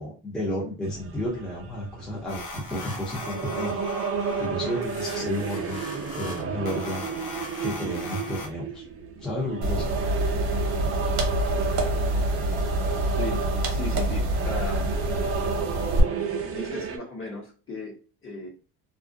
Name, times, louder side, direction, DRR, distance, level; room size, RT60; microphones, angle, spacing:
voice 1, 0.0-5.9 6.1-7.1 7.6-8.8 9.2-9.9, left 1 dB, ahead, -5 dB, 0.7 m, -32 dB
sound 1, 0.8-17.0, right 5 dB, 35° right, 0.5 m, -32 dB
sound 2, 2.3-8.5, left 2 dB, 65° left, 0.8 m, -39 dB
sound 3, 9.6-16.0, right 1 dB, 65° right, 0.9 m, -26 dB
voice 2, 13.2-14.9 16.4-18.5, left 2 dB, 30° left, -1 dB, 1.0 m, -37 dB
2.3 x 2.1 x 2.6 m, 0.35 s
cardioid pair, 115°, 39 cm